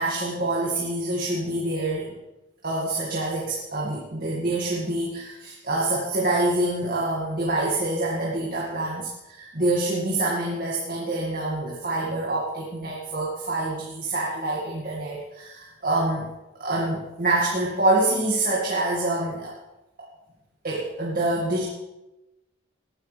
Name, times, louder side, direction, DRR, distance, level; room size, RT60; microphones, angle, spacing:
voice 1, 0.0-2.1 2.6-16.3 16.6-19.6 20.6-21.6, right 2 dB, 45° right, -4 dB, 2.2 m, -26 dB
19.5 x 10.5 x 3.5 m, 0.99 s
head